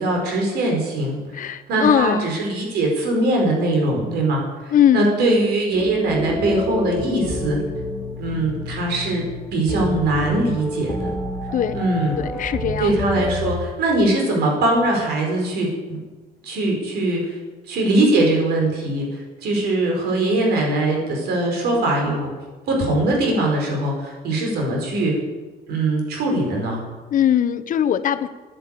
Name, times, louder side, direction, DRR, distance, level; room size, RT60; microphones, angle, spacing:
voice 1, 0.0-7.6 8.2-9.2 9.5-11.1 11.7-12.2 12.8-16.0 16.4-17.4 17.7-22.3 22.7-25.2 25.7-26.8, right 2 dB, 75° right, 0 dB, 4.7 m, -21 dB
voice 2, 1.3-2.3 4.7-5.4 11.5-11.8 12.2-12.9 27.1-28.3, left 10 dB, 50° left, 12 dB, 0.8 m, -20 dB
sound 1, 5.7-13.5, left 1 dB, 5° left, 2.5 m, -28 dB
10.0 x 10.0 x 8.5 m, 1.3 s
cardioid pair, 110°, 17 cm